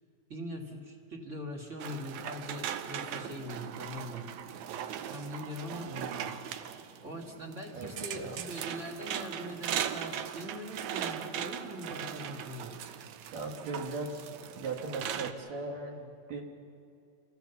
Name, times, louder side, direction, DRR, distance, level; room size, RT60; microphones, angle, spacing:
voice 1, 0.3-4.3 5.1-5.9 7.0-13.1, equal, 25° right, 0 dB, 1.7 m, -42 dB
sound 1, 1.8-15.3, right 9 dB, 75° right, 1.8 m, -39 dB
voice 2, 5.9-6.3 7.7-8.5 13.3-14.3 14.6-16.4, right 3 dB, 55° right, 2 dB, 2.6 m, -38 dB
27.0 x 16.5 x 7.0 m, 2.5 s
omnidirectional pair, 4.1 m